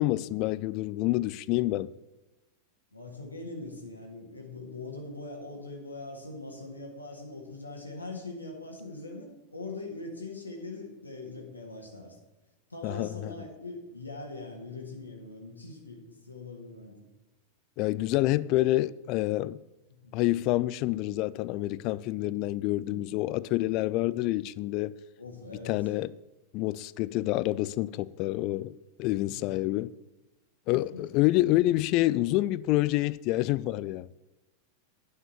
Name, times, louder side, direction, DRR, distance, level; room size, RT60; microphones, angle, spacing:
voice 1, 0.0-1.9 12.8-13.3 17.8-19.6 20.1-25.0 25.7-26.1 26.5-29.9 30.7-34.1, left 17 dB, 40° left, 0.3 m, -27 dB
voice 2, 2.9-12.2 12.7-17.0 19.9-20.2 22.7-23.2 25.2-25.8 29.2-29.6 30.7-30.8, left 2 dB, 80° left, 1.8 m, -42 dB
9.6 x 5.7 x 7.0 m
figure-of-eight pair, 90°, 0 cm